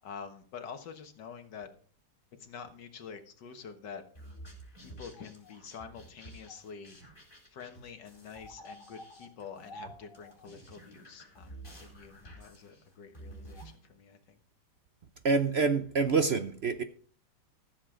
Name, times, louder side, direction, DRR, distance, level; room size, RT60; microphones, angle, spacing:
voice 1, 0.0-1.7 2.4-4.0 4.8-7.0 7.5-14.4, left 6 dB, 90° left, 2.1 m, -47 dB
sound 1, 4.1-13.8, right 1 dB, 30° left, 4.5 m, -50 dB
voice 2, 15.2-16.8, right 4 dB, 55° right, 0.7 m, -26 dB
14.5 x 7.7 x 5.0 m
omnidirectional pair, 1.8 m